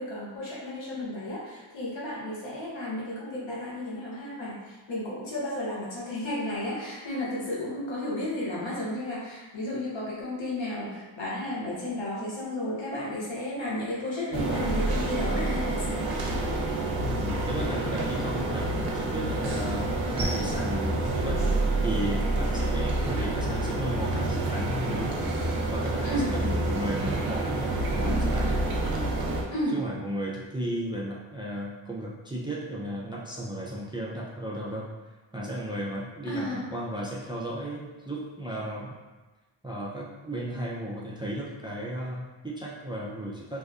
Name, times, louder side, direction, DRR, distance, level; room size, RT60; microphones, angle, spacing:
voice 1, 0.0-16.1 26.0-26.3 29.5-29.7 36.3-36.7, left 1 dB, 65° left, -6 dB, 1.0 m, -33 dB
sound 1, 14.3-29.4, right 2 dB, 50° right, 0.7 m, -28 dB
voice 2, 17.0-25.2 25.7-28.6 29.7-34.9 35.3-38.9 39.6-43.6, right 1 dB, 10° right, -5 dB, 0.4 m, -34 dB
2.7 x 2.2 x 2.4 m, 1.2 s
cardioid pair, 45°, 49 cm